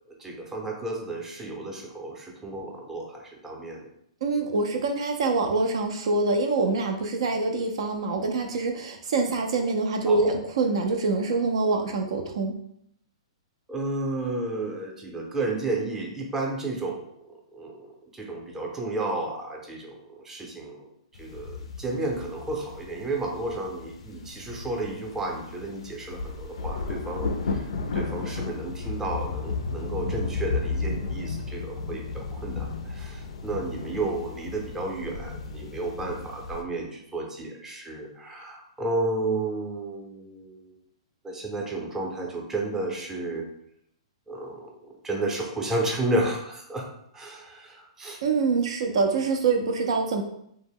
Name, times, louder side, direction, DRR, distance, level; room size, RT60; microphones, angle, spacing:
voice 1, 0.1-3.9 10.1-10.3 13.7-17.0 17.5-20.9 21.2-27.7 27.9-40.7 41.2-43.5 44.3-46.9 47.1-48.2, right 2 dB, 10° right, -1 dB, 0.5 m, -32 dB
voice 2, 4.2-12.5 48.2-50.2, right 3 dB, 70° right, 4 dB, 0.4 m, -25 dB
sound 1, 21.1-36.6, left 4 dB, 80° left, 0.3 m, -34 dB
2.1 x 2.0 x 3.5 m, 0.72 s
hypercardioid pair, 135°, 3 cm